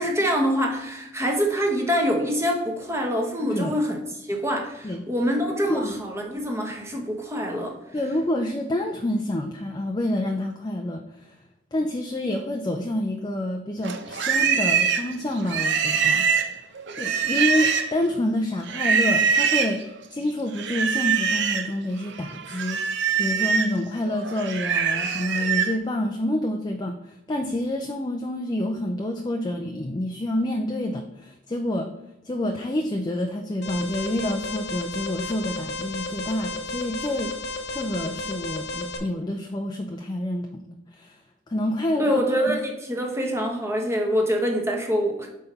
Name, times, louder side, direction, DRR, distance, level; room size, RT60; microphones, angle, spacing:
voice 1, 0.0-7.8 42.0-45.3, equal, 15° right, 1 dB, 1.0 m, -25 dB
voice 2, 3.4-3.7 4.8-5.0 5.7-6.0 7.9-11.4 11.7-16.2 17.0-22.8 23.2-31.9 32.2-41.2 41.5-42.2, left 1 dB, 20° left, 3 dB, 0.4 m, -28 dB
Livestock farm animals working animals, 13.8-18.1 18.7-19.8 20.5-21.7 22.1-25.7, right 6 dB, 60° right, 0.7 m, -24 dB
Alarm, 33.6-39.0, left 2 dB, 55° left, 0.9 m, -33 dB
5.7 x 4.2 x 5.3 m, 0.85 s
head